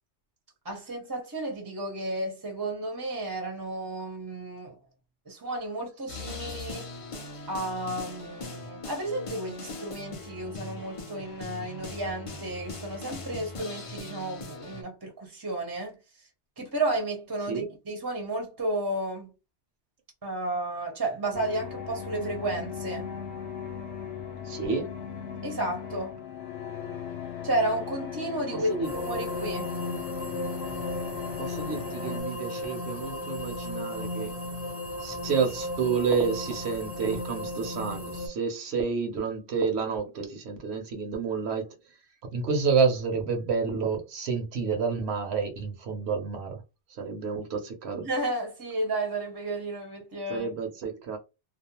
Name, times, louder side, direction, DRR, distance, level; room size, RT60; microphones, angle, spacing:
voice 1, 0.6-4.8 5.3-6.9 7.5-16.0 16.6-19.3 20.2-23.1 25.4-26.2 27.4-29.8 47.9-50.5, right 2 dB, 25° right, 0.5 m, -32 dB
sound 1, 6.1-14.8, left 3 dB, 50° left, 0.4 m, -40 dB
sound 2, 21.3-32.2, left 8 dB, 70° left, 0.8 m, -37 dB
voice 2, 24.5-24.9 28.7-28.9 31.4-34.3 35.0-41.7 42.3-46.6 47.0-48.1 50.3-51.2, right 5 dB, 70° right, 0.9 m, -29 dB
sound 3, 28.8-38.3, left 1 dB, 15° left, 0.6 m, -35 dB
2.4 x 2.0 x 2.8 m
omnidirectional pair, 1.2 m